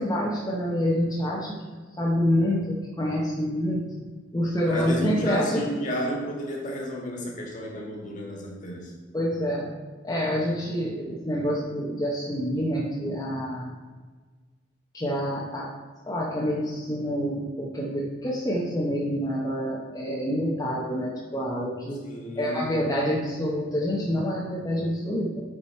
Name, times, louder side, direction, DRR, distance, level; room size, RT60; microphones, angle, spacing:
voice 1, 0.0-5.6 9.1-9.7 10.0-13.7 14.9-15.7 16.1-22.0 22.4-25.4, equal, 20° left, -5 dB, 0.9 m, -27 dB
voice 2, 4.7-8.9 22.1-22.8, equal, 40° left, -1 dB, 1.7 m, -32 dB
8.2 x 4.9 x 4.3 m, 1.4 s
head